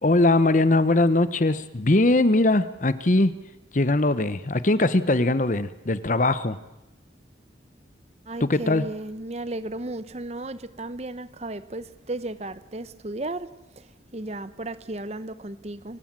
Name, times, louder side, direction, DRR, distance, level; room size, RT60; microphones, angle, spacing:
voice 1, 0.0-3.3 3.7-6.6 8.4-8.8, left 2 dB, 40° left, 0.9 m, -21 dB
voice 2, 8.3-13.5 13.8-16.0, right 2 dB, 35° right, 0.8 m, -34 dB
28.5 x 16.5 x 7.5 m
head